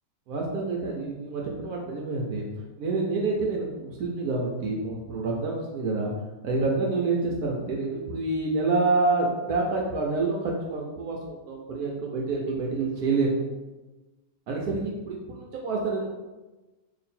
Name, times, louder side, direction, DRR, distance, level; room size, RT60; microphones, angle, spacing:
voice 1, 0.3-2.4 2.8-6.1 6.4-13.5 14.5-16.1, right 3 dB, 70° right, -1 dB, 0.9 m, -27 dB
2.9 x 2.5 x 4.2 m, 1.1 s
omnidirectional pair, 1.9 m